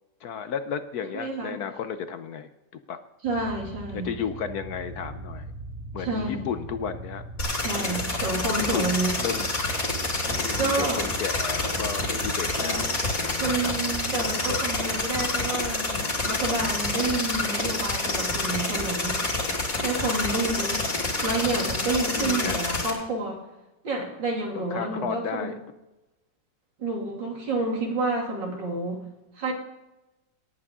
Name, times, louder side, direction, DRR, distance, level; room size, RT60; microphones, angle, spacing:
voice 1, 0.2-2.5 2.9-3.0 3.9-5.5 5.9-7.2 8.7-9.5 10.3-13.7 14.5-14.6 22.1-22.6 24.5-25.6, left 7 dB, 65° left, 10 dB, 1.1 m, -33 dB
voice 2, 1.1-1.6 3.2-4.1 6.0-6.4 7.6-9.1 10.6-11.1 12.6-12.8 13.4-19.3 19.8-20.8 21.2-23.4 23.8-25.5 26.8-29.0 29.4-29.5, right 2 dB, 75° right, 0 dB, 3.4 m, -29 dB
sound 1, 3.2-14.9, right 3 dB, 55° right, 1.8 m, -41 dB
sound 2, 7.4-22.9, left 2 dB, 45° left, 3.0 m, -28 dB
18.5 x 8.6 x 3.7 m, 0.99 s
omnidirectional pair, 2.0 m